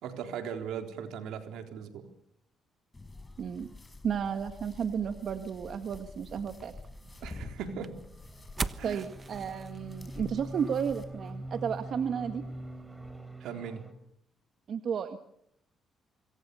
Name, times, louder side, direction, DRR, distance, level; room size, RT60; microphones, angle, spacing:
voice 1, 0.0-2.1 7.2-8.0 8.8-9.0 13.4-13.9, right 7 dB, 85° right, 5 dB, 3.9 m, -38 dB
sound 1, 2.9-11.0, left 3 dB, 20° left, 5.5 m, -49 dB
voice 2, 3.4-3.7 4.0-6.7 8.8-12.4 14.7-15.2, right 7 dB, 60° right, 7 dB, 1.7 m, -33 dB
sound 2, 6.5-13.2, right 4 dB, 35° right, 1.2 m, -44 dB
sound 3, 6.9-13.9, right 1 dB, 10° right, 4.5 m, -44 dB
26.5 x 23.0 x 7.0 m, 0.76 s
cardioid pair, 80°, 0 cm